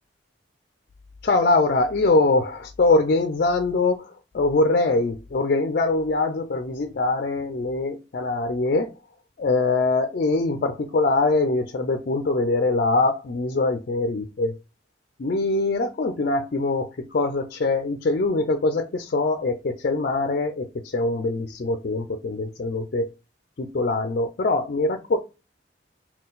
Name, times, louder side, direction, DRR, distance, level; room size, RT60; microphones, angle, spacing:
voice 1, 1.2-8.9 9.4-14.5 15.2-23.1 23.6-25.2, left 3 dB, 55° left, 0.4 m, -23 dB
3.8 x 2.3 x 3.9 m
head